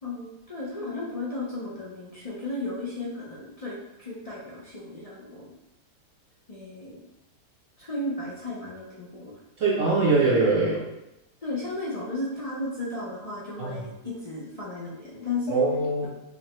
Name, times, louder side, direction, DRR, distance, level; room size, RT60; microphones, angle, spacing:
voice 1, 0.0-5.5 6.5-7.0 7.8-9.4 11.4-15.6, left 2 dB, 60° left, -6 dB, 0.4 m, -34 dB
voice 2, 9.6-10.8 13.6-13.8 15.5-16.1, right 3 dB, 60° right, -5 dB, 1.0 m, -22 dB
5.3 x 2.2 x 3.0 m, 0.90 s
omnidirectional pair, 1.8 m